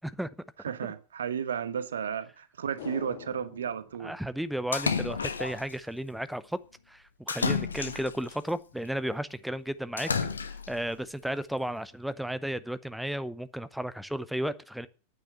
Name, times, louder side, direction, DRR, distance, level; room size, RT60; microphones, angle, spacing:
voice 1, 0.6-4.1, right 8 dB, 65° right, 1.1 m, -33 dB
sound 1, 2.8-5.2 5.5-5.6, left 7 dB, 55° left, 3.0 m, -46 dB
voice 2, 4.0-6.6 6.9-10.1 10.5-14.9, right 1 dB, ahead, 0.7 m, -34 dB
Splash splatter, 4.7-5.7 7.3-8.4 10.0-10.8, left 5 dB, 75° left, 1.3 m, -30 dB
9.5 x 9.1 x 9.3 m
figure-of-eight pair, 90°, 0 cm